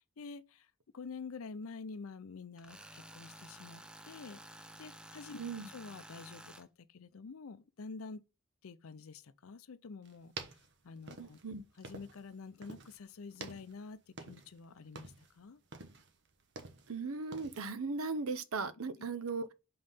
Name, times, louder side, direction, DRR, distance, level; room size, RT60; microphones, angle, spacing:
voice 1, 0.2-8.2 8.6-10.6 10.8-11.4 11.8-15.6, left 4 dB, 75° left, 0.5 m, -48 dB
Tools, 2.6-6.6, right 1 dB, 5° right, 0.3 m, -52 dB
voice 2, 5.4-5.7 11.2-11.6 16.9-19.5, right 4 dB, 80° right, 0.7 m, -38 dB
sound 1, 10.1-12.3 12.6-13.0 13.3-14.6 14.9-15.3 15.7-17.0 17.3-17.7, right 3 dB, 55° right, 1.0 m, -48 dB
5.4 x 3.9 x 5.4 m
head